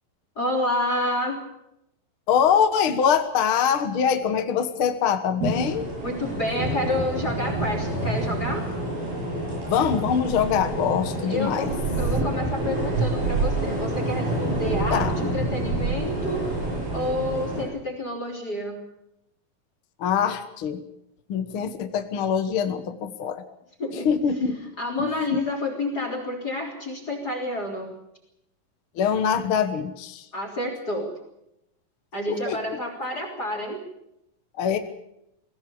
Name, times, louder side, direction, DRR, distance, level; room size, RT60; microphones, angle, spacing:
voice 1, 0.4-1.4 6.0-8.7 11.3-11.7 12.0-16.4 16.9-18.8 23.8-24.1 24.8-27.9 30.3-31.1 32.1-33.8, left 1 dB, 25° left, 4 dB, 3.6 m, -29 dB
voice 2, 2.3-5.9 9.7-11.7 14.9-15.2 20.0-20.8 21.3-23.4 23.9-25.4 28.9-30.3 32.3-32.6 34.6-34.8, left 7 dB, 60° left, 8 dB, 1.4 m, -24 dB
sound 1, 5.4-17.6, right 2 dB, 75° right, 10.0 m, -27 dB
22.5 x 17.0 x 8.6 m, 0.82 s
omnidirectional pair, 4.3 m